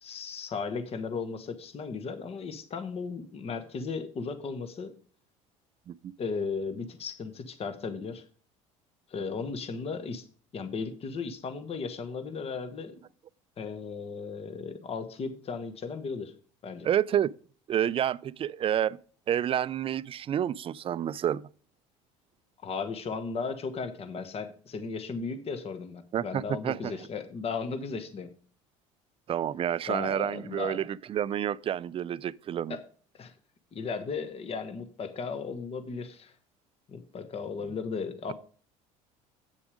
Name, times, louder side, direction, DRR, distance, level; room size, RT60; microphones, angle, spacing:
voice 1, 0.0-4.9 6.2-8.2 9.1-10.2 10.5-13.0 13.6-16.3 16.6-16.9 22.6-28.3 29.9-30.8 32.7-32.8 33.1-33.3 33.7-36.3 36.9-38.3, left 5 dB, 40° left, 1.2 m, -36 dB
voice 2, 16.8-17.3 17.7-19.0 19.3-21.4 26.1-26.9 29.3-32.8, right 10 dB, 35° right, 0.4 m, -29 dB
8.4 x 7.0 x 5.0 m
supercardioid pair, 80°, 16 cm